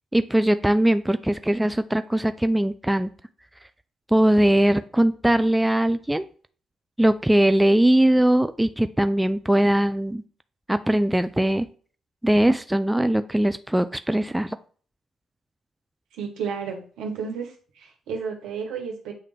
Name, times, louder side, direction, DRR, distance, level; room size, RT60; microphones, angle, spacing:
voice 1, 0.1-3.1 4.1-6.2 7.0-10.2 10.7-11.7 12.2-14.6, right 1 dB, 10° right, 11 dB, 0.4 m, -20 dB
voice 2, 16.2-17.5 17.8-19.1, right 6 dB, 75° right, 2 dB, 1.4 m, -32 dB
8.4 x 3.5 x 3.4 m, 0.43 s
hypercardioid pair, 45°, 0 cm